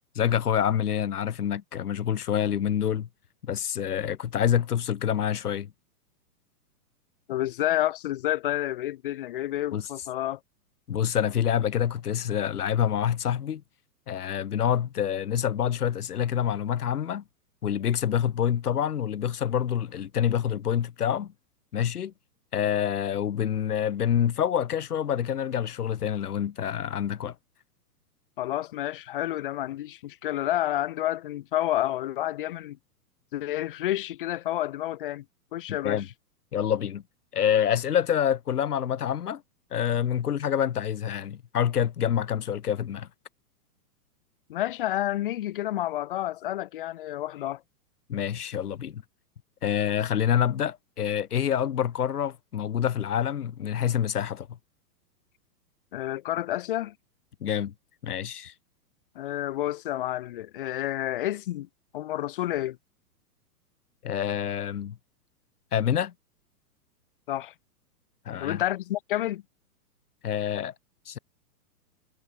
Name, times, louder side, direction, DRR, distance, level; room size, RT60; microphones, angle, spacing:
voice 1, 0.1-3.1 3.4-5.7 9.7-9.9 10.9-13.6 14.1-17.2 17.6-21.3 21.7-22.1 22.5-27.3 35.7-36.1 36.5-37.0 37.3-39.4 39.7-43.1 48.1-49.0 49.6-54.5 57.4-57.7 58.0-58.5 64.0-65.0 65.7-66.1 68.3-68.6 70.2-70.7 71.1-71.2, left 9 dB, 70° left, 7.9 m, -27 dB
voice 2, 7.3-10.4 28.4-32.8 33.3-35.2 35.5-36.0 44.5-47.6 55.9-56.9 59.1-61.7 61.9-62.8 67.3-67.5 68.4-69.4, left 14 dB, 35° left, 1.5 m, -29 dB
hypercardioid pair, 175°, 47 cm